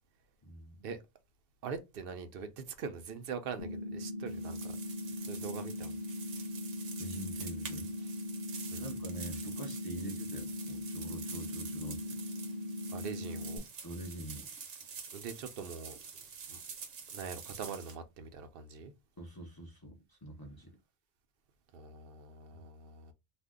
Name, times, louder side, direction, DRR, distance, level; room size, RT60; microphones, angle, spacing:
voice 1, 0.4-0.9 7.0-7.9 8.7-12.2 13.8-14.5 19.2-20.7 22.5-22.6, right 1 dB, 25° left, 0.5 m, -45 dB
voice 2, 1.6-4.8 5.2-5.9 8.7-8.9 12.9-13.6 15.1-16.0 16.5-16.6 17.1-18.9 21.7-23.1, right 5 dB, 60° right, 0.7 m, -43 dB
sound 1, 3.6-13.6, left 1 dB, 75° left, 0.9 m, -40 dB
sound 2, 4.3-17.9, right 6 dB, 90° right, 1.1 m, -47 dB
2.6 x 2.2 x 3.5 m
omnidirectional pair, 1.2 m